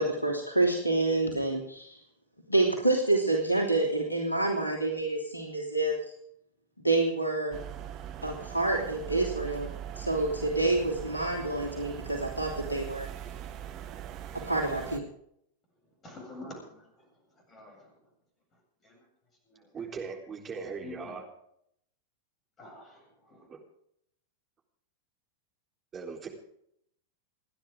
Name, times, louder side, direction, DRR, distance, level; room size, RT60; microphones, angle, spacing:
voice 1, 0.0-2.0 2.5-5.9 6.8-7.6 8.2-9.7 9.9-13.1 14.5-15.0, right 2 dB, 85° left, 0 dB, 3.1 m, -28 dB
sound 1, 7.5-15.0, right 10 dB, 40° right, 1.6 m, -41 dB
voice 2, 16.0-17.1 17.5-17.9 18.8-19.0 19.5-19.7 20.8-21.2 22.6-23.5, left 2 dB, 20° left, 1 dB, 7.9 m, -47 dB
voice 3, 19.7-21.3 23.5-23.6 25.9-26.3, right 5 dB, 20° right, 1 dB, 3.8 m, -39 dB
29.5 x 10.0 x 3.7 m, 0.71 s
figure-of-eight pair, 90°, 0 cm